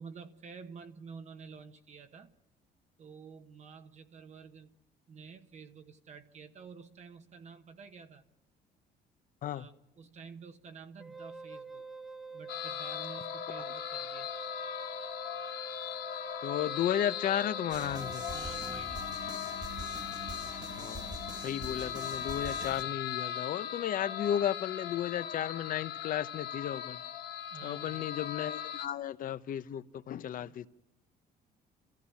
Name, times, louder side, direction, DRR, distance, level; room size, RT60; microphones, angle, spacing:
voice 1, 0.0-2.3 3.0-4.7 5.1-8.2 9.5-11.9 12.3-14.3 18.3-19.1 27.5-28.2 30.4-30.6, right 5 dB, 45° right, 1.2 m, -50 dB
Wind instrument woodwind instrument, 11.0-18.8, right 4 dB, ahead, 1.0 m, -46 dB
sound 1, 12.5-28.9, left 10 dB, 85° left, 1.1 m, -39 dB
voice 2, 16.4-18.2 20.7-27.0 27.6-30.7, left 10 dB, 55° left, 0.8 m, -34 dB
sound 2, 17.7-22.8, right 2 dB, 20° right, 1.6 m, -44 dB
27.0 x 14.5 x 8.4 m
cardioid pair, 110°, 17 cm